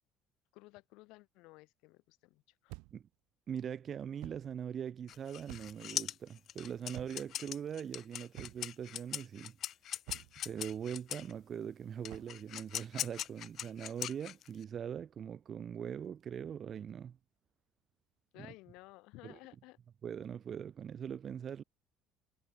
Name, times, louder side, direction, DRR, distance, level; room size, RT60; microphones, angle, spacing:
voice 1, 0.5-2.8 18.3-19.8, left 22 dB, 80° left, 7.3 m, -55 dB
sound 1, 2.7-3.1 4.2-4.5 5.5-5.9 6.9-7.4 8.3-8.8 10.1-10.4 12.1-12.4, right 27 dB, 90° right, 4.7 m, -50 dB
voice 2, 3.5-9.6 10.5-17.2 18.4-18.5 19.2-19.4 20.0-21.6, right 8 dB, 40° right, 2.0 m, -42 dB
sound 2, 5.1-11.3 12.0-14.6, left 11 dB, 50° left, 1.0 m, -41 dB
cardioid pair, 135°, 0 cm